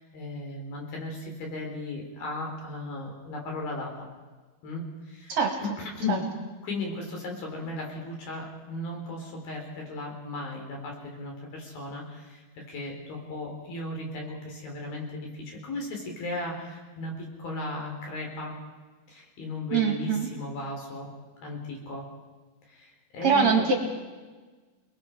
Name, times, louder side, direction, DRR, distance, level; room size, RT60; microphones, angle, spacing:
voice 1, 0.0-4.1 4.6-6.3 6.6-18.6 19.1-21.1 21.4-22.1 22.7-23.6, left 2 dB, 70° left, 0 dB, 5.8 m, -36 dB
voice 2, 19.7-20.3 23.2-23.7, right 5 dB, 55° right, 2 dB, 2.5 m, -23 dB
29.0 x 20.5 x 4.6 m, 1.3 s
omnidirectional pair, 4.4 m